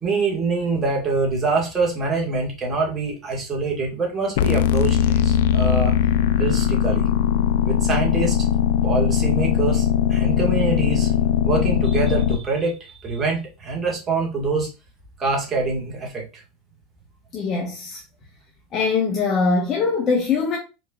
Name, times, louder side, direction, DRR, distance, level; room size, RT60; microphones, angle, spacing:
voice 1, 0.0-5.9 6.4-7.1 7.6-8.4 8.8-11.1 11.4-14.7 15.2-16.4, right 4 dB, 25° right, 1.9 m, -25 dB
sound 1, 4.4-12.4, left 9 dB, 75° left, 0.4 m, -20 dB
voice 2, 17.3-18.0 18.7-20.6, left 4 dB, 35° left, 1.2 m, -22 dB
4.5 x 4.4 x 2.5 m
supercardioid pair, 130°, 0 cm